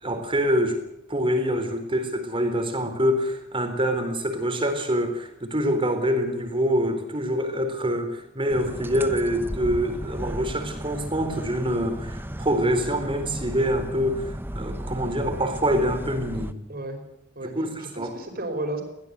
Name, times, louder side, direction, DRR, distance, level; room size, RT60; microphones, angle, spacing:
voice 1, 0.0-0.8 1.1-16.6 17.5-18.1, equal, 30° right, 7 dB, 4.0 m, -25 dB
sound 1, 8.5-16.5, equal, 10° right, 1.1 m, -35 dB
voice 2, 16.7-17.0 17.3-17.5 17.8-18.8, right 2 dB, 50° right, 6 dB, 5.0 m, -33 dB
22.0 x 16.5 x 8.2 m, 0.83 s
head